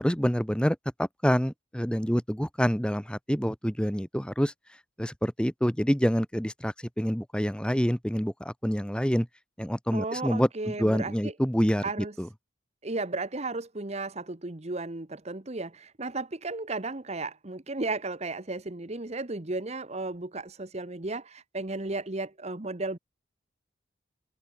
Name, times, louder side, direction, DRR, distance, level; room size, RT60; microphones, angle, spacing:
voice 1, 0.0-4.5 5.0-9.3 9.6-11.8 12.2-12.3, equal, 5° left, 2.1 m, -27 dB
voice 2, 9.9-11.3 11.8-12.1 12.8-23.0, right 3 dB, 35° right, 1.2 m, -34 dB
head